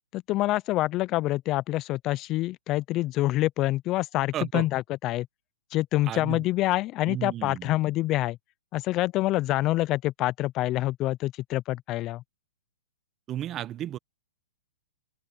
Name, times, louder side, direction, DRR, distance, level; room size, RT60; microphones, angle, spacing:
voice 1, 0.1-5.3 5.7-8.4 8.7-12.2, left 17 dB, 30° left, 0.4 m, -26 dB
voice 2, 4.3-4.7 6.0-6.4 7.0-7.8 13.3-14.0, right 12 dB, 25° right, 1.0 m, -33 dB
open air
hypercardioid pair, 140°, 0 cm